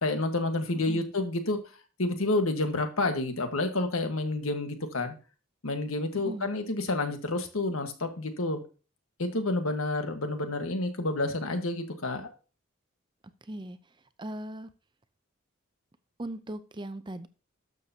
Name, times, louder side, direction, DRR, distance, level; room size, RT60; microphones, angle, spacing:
voice 1, 0.0-1.6 2.0-5.1 5.6-8.6 9.2-12.3, left 2 dB, 85° left, 6 dB, 1.5 m, -29 dB
voice 2, 6.1-6.5 13.4-13.8 14.2-14.7 16.2-17.3, right 1 dB, 20° right, 12 dB, 0.6 m, -38 dB
12.5 x 6.7 x 2.9 m, 0.35 s
head